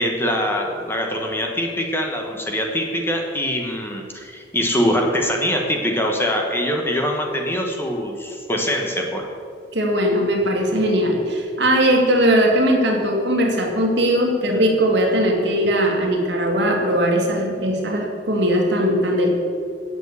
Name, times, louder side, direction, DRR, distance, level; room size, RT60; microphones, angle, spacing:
voice 1, 0.0-9.3, equal, 15° left, 1 dB, 1.1 m, -23 dB
voice 2, 9.7-19.3, equal, 65° right, 1 dB, 1.9 m, -19 dB
8.3 x 7.1 x 8.1 m, 2.2 s
head